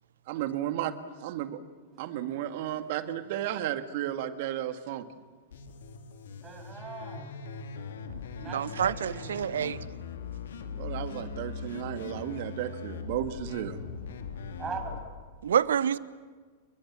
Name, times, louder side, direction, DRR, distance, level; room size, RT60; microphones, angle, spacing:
voice 1, 0.3-0.9 1.2-1.6 2.0-5.0 10.8-13.8, right 12 dB, 50° right, 9 dB, 2.1 m, -33 dB
sound 1, 5.5-15.0, left 5 dB, 65° left, 2.9 m, -40 dB
voice 2, 6.4-7.3 8.4-9.8 14.6-15.1, right 4 dB, 20° right, 3 dB, 7.3 m, -41 dB
voice 3, 8.5-9.8 15.4-16.0, right 8 dB, 65° right, 19 dB, 0.9 m, -27 dB
29.5 x 23.0 x 7.5 m, 1.5 s
figure-of-eight pair, 95°, 0 cm